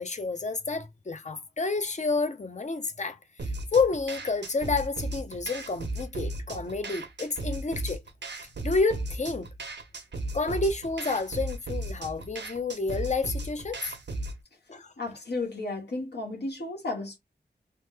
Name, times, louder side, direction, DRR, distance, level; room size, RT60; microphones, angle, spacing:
voice 1, 0.0-3.2 3.7-8.0 8.6-9.5 10.3-14.0 14.7-14.9, left 3 dB, 40° left, 0.6 m, -29 dB
sound 1, 3.4-14.4, right 2 dB, 75° right, 0.8 m, -36 dB
voice 2, 15.0-17.2, left 2 dB, 65° left, 1.0 m, -33 dB
3.1 x 2.1 x 3.4 m
wide cardioid pair, 65°, 18 cm